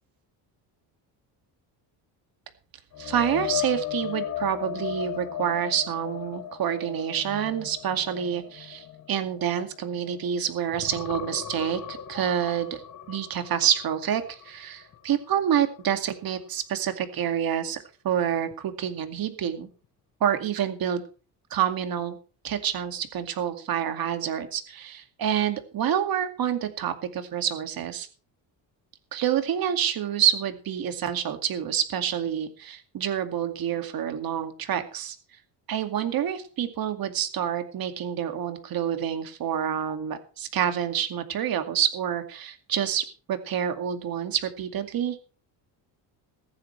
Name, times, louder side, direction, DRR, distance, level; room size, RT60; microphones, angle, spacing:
sound 1, 2.9-10.3 10.7-14.6 14.9-15.2 18.5-18.6, left 10 dB, 40° left, 1.2 m, -36 dB
voice 1, 3.0-12.8 13.1-17.8 18.0-19.7 20.2-21.0 21.5-22.2 22.4-28.1 29.1-35.2 35.7-45.2, right 9 dB, 55° right, 7 dB, 2.3 m, -28 dB
15.5 x 14.5 x 3.3 m, 0.38 s
cardioid pair, 135°, 43 cm